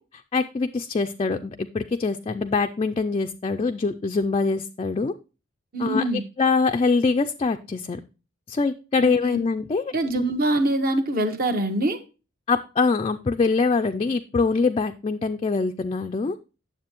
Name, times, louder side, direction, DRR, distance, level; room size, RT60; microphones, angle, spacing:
voice 1, 0.0-5.1 5.8-8.0 8.5-10.2 12.5-16.4, left 4 dB, 30° left, 6 dB, 0.3 m, -24 dB
voice 2, 5.7-6.2 9.0-9.4 9.9-12.0, right 1 dB, 50° right, 6 dB, 1.1 m, -24 dB
9.5 x 7.3 x 2.9 m, 0.32 s
head